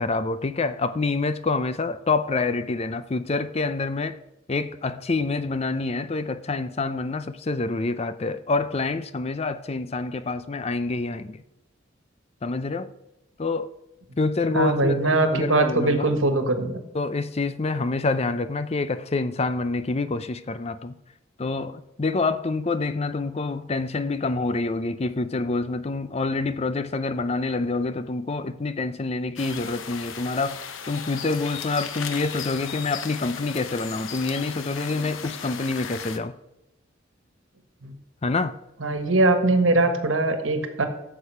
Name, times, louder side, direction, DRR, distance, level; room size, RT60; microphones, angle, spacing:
voice 1, 0.0-4.2 4.5-11.3 12.4-12.9 13.4-13.7 14.2-16.1 16.9-21.0 21.4-30.6 30.9-36.3 38.2-38.5, left 3 dB, 30° left, 0.5 m, -27 dB
voice 2, 14.5-16.8 37.8-37.9 38.8-40.9, right 2 dB, 90° right, 1.4 m, -21 dB
sound 1, 29.4-36.2, left 7 dB, 85° left, 0.9 m, -36 dB
9.1 x 6.8 x 5.5 m
head